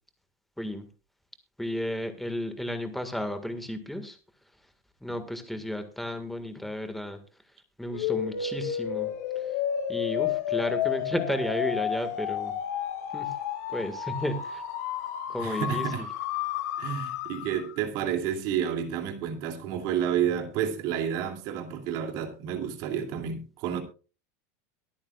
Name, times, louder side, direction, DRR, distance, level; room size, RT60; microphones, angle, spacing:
voice 1, 1.6-4.2 5.0-7.2 7.8-9.4 9.9-12.5 13.1-13.3 13.7-14.6 15.3-16.1, left 1 dB, ahead, 8 dB, 1.6 m, -33 dB
sound 1, 7.9-17.8, left 10 dB, 90° left, 4.7 m, -31 dB
voice 2, 15.4-16.0 16.8-23.8, right 9 dB, 50° right, 5 dB, 2.6 m, -30 dB
23.0 x 8.7 x 2.3 m, 0.33 s
supercardioid pair, 155°, 9 cm